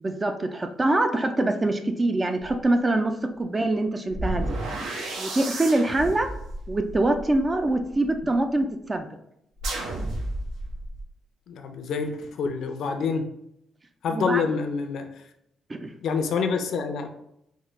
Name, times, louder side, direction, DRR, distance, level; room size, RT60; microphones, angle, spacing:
voice 1, 0.0-4.6 5.2-6.3 6.7-9.1 14.1-14.4 15.7-15.9, right 2 dB, 25° right, 7 dB, 0.3 m, -24 dB
sound 1, 2.4-2.6 4.1-8.2 9.6-11.0, right 1 dB, 85° right, 0.7 m, -32 dB
voice 2, 11.5-13.3 14.0-15.1 16.0-17.1, left 5 dB, 70° left, 6 dB, 0.5 m, -27 dB
3.5 x 2.4 x 3.1 m, 0.76 s
cardioid pair, 90°, 0 cm